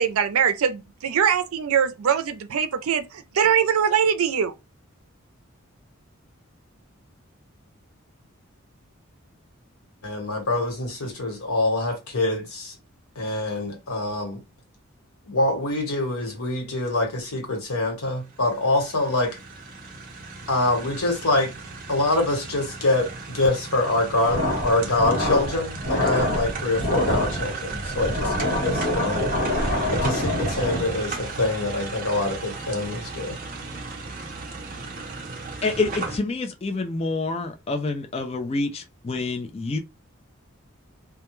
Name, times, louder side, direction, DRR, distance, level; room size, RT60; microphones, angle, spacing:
voice 1, 0.0-4.5, right 7 dB, 85° right, 0.4 m, -22 dB
voice 2, 10.0-12.7 13.2-14.4 15.3-19.4 20.5-21.5 21.9-29.3 29.9-33.4, left 2 dB, 85° left, 1.1 m, -25 dB
sound 1, 18.2-36.2, right 4 dB, 40° right, 0.6 m, -36 dB
sound 2, 24.2-31.1, left 1 dB, 60° left, 1.1 m, -26 dB
voice 3, 35.6-39.8, left 3 dB, 25° left, 0.3 m, -27 dB
2.2 x 2.2 x 3.0 m
head